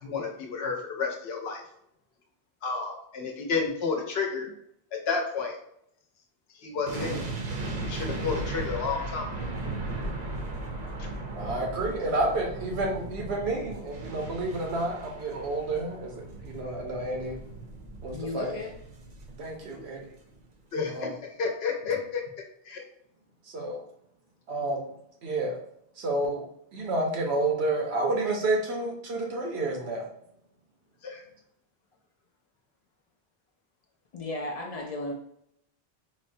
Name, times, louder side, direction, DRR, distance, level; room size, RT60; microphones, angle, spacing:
voice 1, 0.0-1.6 2.6-4.5 5.1-5.6 6.6-7.2 7.9-9.3 19.7-19.8 20.7-21.1 21.4-22.2 22.7-22.8 31.0-31.2, left 5 dB, 80° left, 2 dB, 0.9 m, -31 dB
sound 1, 6.9-20.0 20.3-20.5, right 2 dB, 50° right, 0.6 m, -37 dB
voice 2, 11.3-17.4 18.0-18.5 19.4-20.1 20.9-21.1 23.5-23.8 24.5-24.8 25.2-25.6 26.0-26.4 26.7-30.1, right 2 dB, 85° right, 0 dB, 1.1 m, -30 dB
voice 3, 18.1-18.7 34.1-35.1, left 2 dB, 50° left, 0 dB, 0.5 m, -34 dB
4.2 x 2.1 x 2.6 m, 0.72 s
omnidirectional pair, 1.0 m